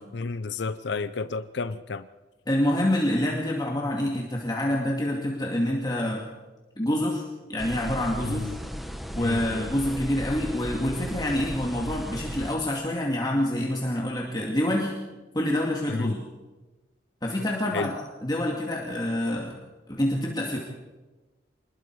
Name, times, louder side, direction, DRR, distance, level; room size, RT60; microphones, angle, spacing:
voice 1, 0.1-2.1 8.2-8.6 9.2-9.6 15.9-16.2 17.7-17.9, left 4 dB, 70° left, 0.6 m, -31 dB
voice 2, 2.5-6.2 6.8-7.2 7.5-8.5 9.1-14.9 15.3-16.2 17.2-17.9 18.2-19.6 19.9-20.6, left 1 dB, 20° left, 2.3 m, -27 dB
sound 1, 7.6-12.6, equal, ahead, 1.1 m, -36 dB
26.0 x 20.5 x 4.8 m
head